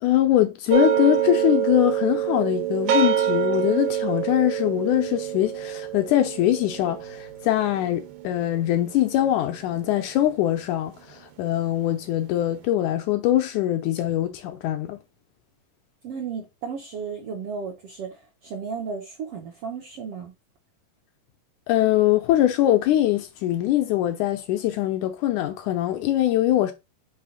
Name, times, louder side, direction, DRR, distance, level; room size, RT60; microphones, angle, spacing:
voice 1, 0.0-15.0 21.7-26.7, left 13 dB, 80° left, 1.9 m, -22 dB
sound 1, 0.7-9.9, right 10 dB, 85° right, 2.7 m, -26 dB
voice 2, 16.0-20.3, right 6 dB, 70° right, 1.4 m, -34 dB
5.6 x 3.4 x 5.1 m
omnidirectional pair, 3.9 m